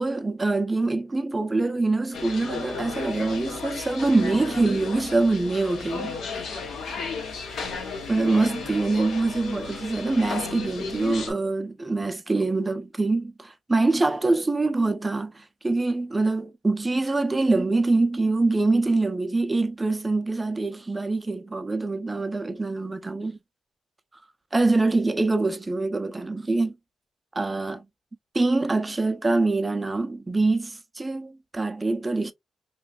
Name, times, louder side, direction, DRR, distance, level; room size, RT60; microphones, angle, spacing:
voice 1, 0.0-6.2 8.1-23.4 24.5-26.7 27.3-27.8 28.3-32.3, right 3 dB, 20° right, 0.5 m, -24 dB
sound 1, 2.1-11.3, left 4 dB, 80° left, 0.8 m, -34 dB
3.0 x 2.5 x 2.3 m
cardioid pair, 105°, 0 cm